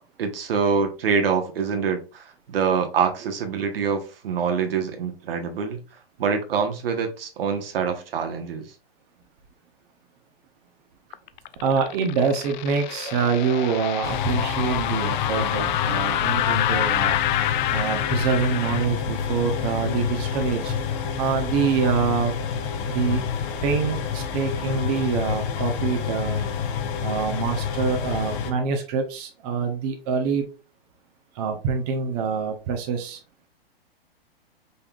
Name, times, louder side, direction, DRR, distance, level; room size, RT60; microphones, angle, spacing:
voice 1, 0.2-5.8 6.2-8.7, right 6 dB, 70° right, 1.2 m, -25 dB
sound 1, 11.1-18.9, left 13 dB, 50° left, 0.4 m, -27 dB
voice 2, 11.6-17.2 17.7-20.7 21.2-22.3 22.8-23.2 23.6-26.5 27.0-30.4 31.3-33.2, right 6 dB, 40° right, 1.0 m, -25 dB
sound 2, 14.0-28.5, left 7 dB, 35° left, 0.9 m, -28 dB
5.4 x 3.7 x 2.4 m
hypercardioid pair, 120°, 30 cm